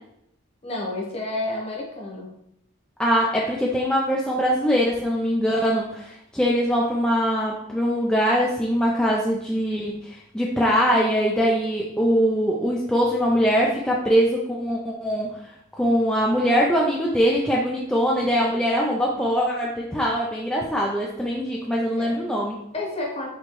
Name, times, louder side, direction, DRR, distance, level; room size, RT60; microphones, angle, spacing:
voice 1, 0.6-2.3 22.0-22.1 22.7-23.3, left 2 dB, 30° left, -2 dB, 1.0 m, -30 dB
voice 2, 3.0-15.3 15.8-22.6, equal, 5° left, -4 dB, 0.3 m, -22 dB
4.4 x 3.0 x 3.0 m, 0.76 s
head